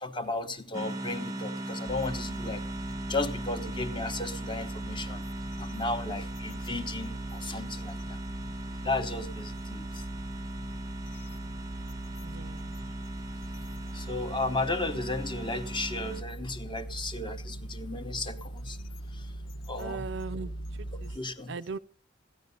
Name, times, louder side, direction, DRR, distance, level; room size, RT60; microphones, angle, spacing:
voice 1, 0.0-2.7 3.1-5.2 5.6-8.2 8.8-10.0 13.9-18.8 19.1-19.2 19.7-20.0 21.1-21.5, left 2 dB, 25° left, 0.9 m, -34 dB
sound 1, 0.7-16.2, right 1 dB, 15° right, 0.6 m, -39 dB
sound 2, 1.9-21.2, right 1 dB, 50° left, 1.0 m, -40 dB
voice 2, 12.2-12.9 19.8-20.5 20.8-21.1 21.5-21.8, right 4 dB, 55° right, 0.5 m, -39 dB
14.5 x 10.0 x 5.3 m
head